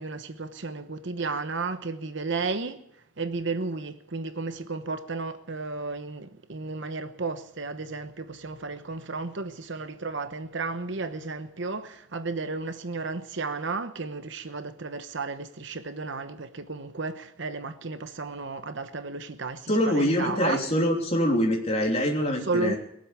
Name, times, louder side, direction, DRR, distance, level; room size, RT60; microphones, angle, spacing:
voice 1, 0.0-2.8 3.2-20.6 22.4-22.8, right 3 dB, 60° right, 1.0 m, -33 dB
voice 2, 19.7-22.8, equal, 30° left, 3.2 m, -24 dB
22.0 x 7.8 x 8.5 m
head